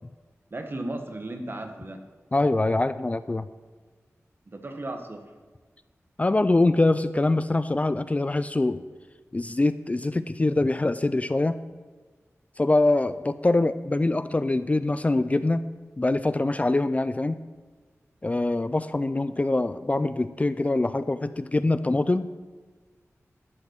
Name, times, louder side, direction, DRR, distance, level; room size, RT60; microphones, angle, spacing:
voice 1, 0.5-2.0 4.5-5.3, right 1 dB, 45° right, 6 dB, 1.1 m, -35 dB
voice 2, 2.3-3.5 6.2-8.8 9.3-11.6 12.6-15.6 16.0-17.4 18.2-22.3, left 2 dB, 25° left, 13 dB, 0.3 m, -24 dB
10.5 x 5.2 x 6.4 m, 1.4 s
wide cardioid pair, 70°, 5 cm